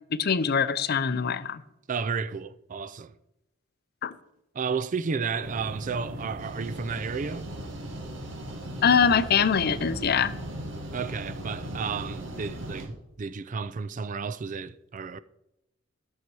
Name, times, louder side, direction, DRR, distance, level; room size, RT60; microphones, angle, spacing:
voice 1, 0.1-1.6 4.0-4.1 8.8-10.4, left 6 dB, 55° left, 0.5 m, -23 dB
voice 2, 1.9-3.1 4.5-7.4 10.9-15.2, right 5 dB, 40° right, 0.4 m, -32 dB
sound 1, 5.4-12.9, right 1 dB, 70° right, 1.8 m, -37 dB
13.0 x 6.6 x 4.6 m
head